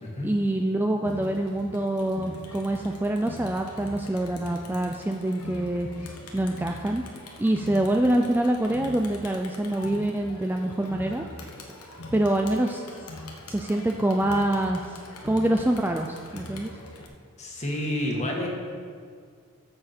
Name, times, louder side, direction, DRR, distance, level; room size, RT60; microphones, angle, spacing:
voice 1, 0.2-5.9 6.3-7.0 7.4-11.2 12.1-12.8 13.5-16.7, right 1 dB, 10° right, 3 dB, 0.4 m, -25 dB
Crowd, 1.0-17.1, left 2 dB, 80° left, 1.3 m, -42 dB
voice 2, 17.4-18.5, left 1 dB, 30° left, -1 dB, 1.7 m, -29 dB
13.5 x 7.3 x 4.3 m, 2.1 s
head